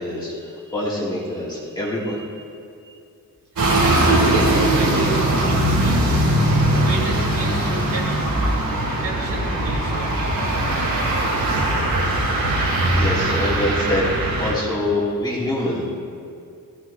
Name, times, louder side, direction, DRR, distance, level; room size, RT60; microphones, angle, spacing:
voice 1, 0.0-2.5 12.9-15.8, left 1 dB, 10° left, -7 dB, 3.0 m, -25 dB
sound 1, 3.6-14.5, right 1 dB, 80° right, 4.2 m, -20 dB
voice 2, 3.8-6.3 6.7-8.4 8.9-10.5, right 2 dB, 60° right, -5 dB, 3.7 m, -32 dB
20.0 x 16.5 x 2.9 m, 2.4 s
wide cardioid pair, 165°, 34 cm